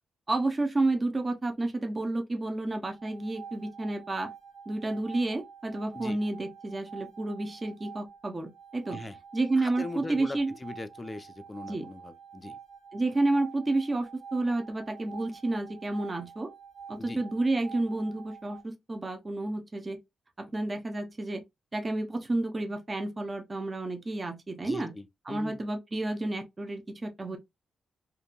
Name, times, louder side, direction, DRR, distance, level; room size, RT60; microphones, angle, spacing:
voice 1, 0.3-4.3 4.7-9.0 9.3-10.5 11.7-11.9 12.9-16.5 16.9-20.0 20.4-21.4 21.7-24.9 25.3-27.4, right 2 dB, 30° right, 0.7 m, -30 dB
sound 1, 2.8-18.6, right 6 dB, 80° right, 0.7 m, -48 dB
voice 2, 9.6-12.6 17.0-17.2 24.6-25.6, left 2 dB, 25° left, 0.4 m, -40 dB
2.7 x 2.5 x 2.2 m
cardioid pair, 70°, 0 cm